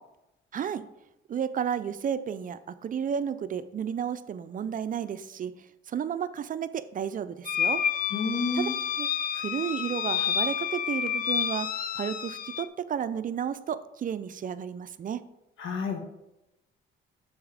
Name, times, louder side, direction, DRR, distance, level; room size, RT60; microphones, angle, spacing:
voice 1, 0.5-0.9 1.3-7.8 8.5-8.7 9.0-15.3, right 8 dB, 45° right, 13 dB, 0.4 m, -32 dB
High Pitched Mandrake, 7.5-12.7, left 8 dB, 50° left, 0.4 m, -29 dB
voice 2, 8.1-8.8 15.6-16.0, left 4 dB, 80° left, 4 dB, 1.3 m, -29 dB
7.0 x 4.1 x 4.9 m, 0.91 s
cardioid pair, 90°, 20 cm